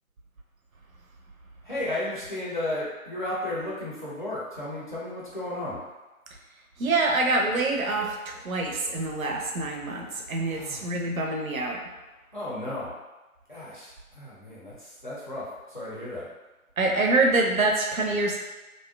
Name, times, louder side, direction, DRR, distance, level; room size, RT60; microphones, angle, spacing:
voice 1, 1.6-5.8 10.5-10.9 12.3-12.9 13.5-16.3, left 1 dB, 35° left, -8 dB, 0.6 m, -34 dB
voice 2, 6.8-11.8 16.8-18.4, right 2 dB, 70° right, 0 dB, 0.6 m, -25 dB
2.5 x 2.1 x 2.3 m, 1.1 s
figure-of-eight pair, 160°, 43 cm